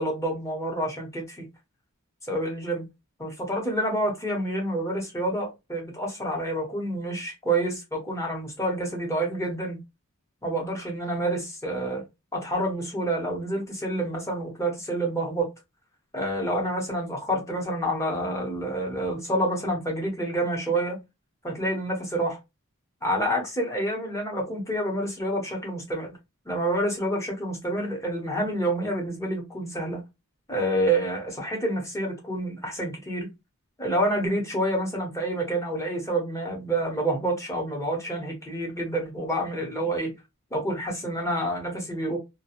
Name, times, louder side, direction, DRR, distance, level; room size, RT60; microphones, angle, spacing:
voice 1, 0.0-1.4 2.3-2.9 3.2-9.8 10.4-12.0 12.3-15.5 16.1-21.0 21.4-22.4 23.0-26.2 26.5-30.0 30.5-33.3 33.8-40.1 40.5-42.2, right 1 dB, 15° left, 0.9 m, -28 dB
2.4 x 2.2 x 2.8 m
head